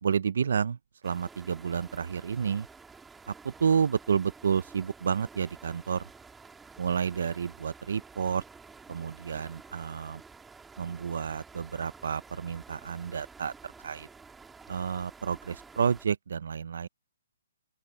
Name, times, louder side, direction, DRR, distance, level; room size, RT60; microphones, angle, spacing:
voice 1, 0.0-0.8 1.0-2.7 3.3-6.0 6.8-8.4 8.9-10.2 10.8-14.1 14.7-16.9, right 7 dB, 55° right, 0.5 m, -30 dB
sound 1, 1.0-16.1, right 4 dB, 5° right, 1.8 m, -51 dB
open air
hypercardioid pair, 175°, 0 cm